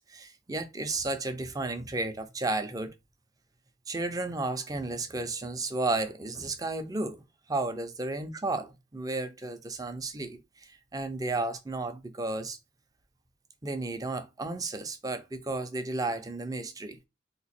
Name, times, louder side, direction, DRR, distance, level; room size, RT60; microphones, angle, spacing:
voice 1, 0.0-2.9 3.9-7.2 7.5-12.6 13.6-17.0, right 2 dB, 20° right, 0.5 m, -33 dB
3.0 x 2.3 x 4.2 m
head